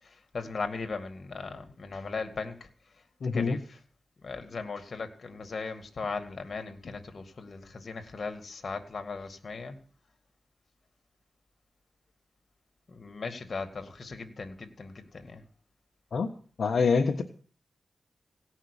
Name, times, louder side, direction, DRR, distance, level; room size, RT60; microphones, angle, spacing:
voice 1, 0.3-2.7 3.3-3.8 4.2-9.8 12.9-15.4, left 4 dB, 55° left, 2.1 m, -38 dB
voice 2, 3.2-3.6 16.1-16.3 16.6-17.2, left 5 dB, 70° left, 1.4 m, -25 dB
17.0 x 5.8 x 10.0 m
wide cardioid pair, 85°, 0 cm